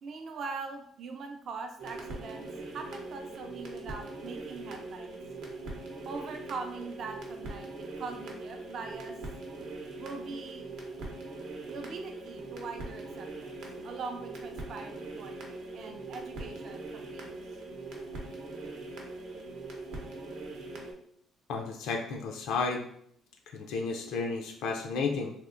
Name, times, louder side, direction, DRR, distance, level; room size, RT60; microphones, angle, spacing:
voice 1, 0.0-2.5 2.7-5.2 6.1-7.7 8.0-9.1 10.0-10.7 11.7-17.3, right 4 dB, 50° right, 4 dB, 0.4 m, -42 dB
sound 1, 1.8-20.9, right 2 dB, 75° right, 0.7 m, -41 dB
voice 2, 21.5-22.8 23.5-25.3, left 4 dB, 85° left, 2 dB, 0.4 m, -32 dB
3.4 x 2.7 x 2.5 m, 0.67 s
cardioid pair, 150°, 0 cm